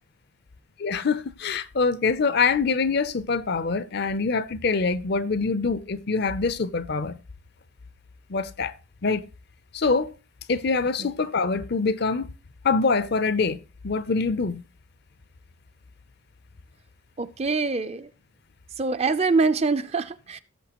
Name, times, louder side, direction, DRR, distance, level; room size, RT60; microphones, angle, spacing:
voice 1, 0.8-7.2 8.3-8.7 9.0-9.2 9.7-10.1 10.5-12.3 12.6-13.6 13.8-14.6, left 4 dB, 50° left, 0.5 m, -24 dB
voice 2, 17.2-18.1 18.8-20.4, right 4 dB, 30° right, 0.5 m, -24 dB
16.0 x 6.8 x 2.9 m
head